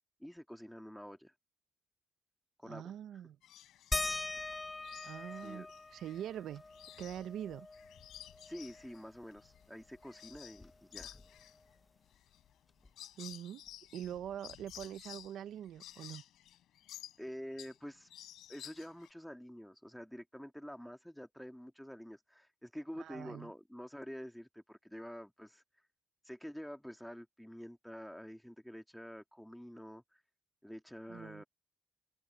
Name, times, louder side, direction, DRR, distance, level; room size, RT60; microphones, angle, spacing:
voice 1, 0.2-1.3 2.6-2.8 3.1-3.2 5.4-5.7 8.4-11.2 17.2-18.1 18.5-25.6 26.2-30.2 30.6-31.4, equal, ahead, 2.2 m, -48 dB
voice 2, 2.7-3.4 5.0-5.7 5.9-6.6 7.0-7.7 13.2-13.6 13.9-16.2 23.0-23.5 31.1-31.4, right 10 dB, 75° right, 0.7 m, -43 dB
sound 1, 3.4-4.0 4.4-6.2 6.6-10.6 10.9-17.8 18.1-19.1, left 12 dB, 80° left, 4.1 m, -53 dB
sound 2, 3.9-9.0 9.4-9.5 9.8-11.6 12.8-12.9 13.7-13.8, left 3 dB, 20° left, 0.7 m, -42 dB
cardioid pair, 90°, 0 cm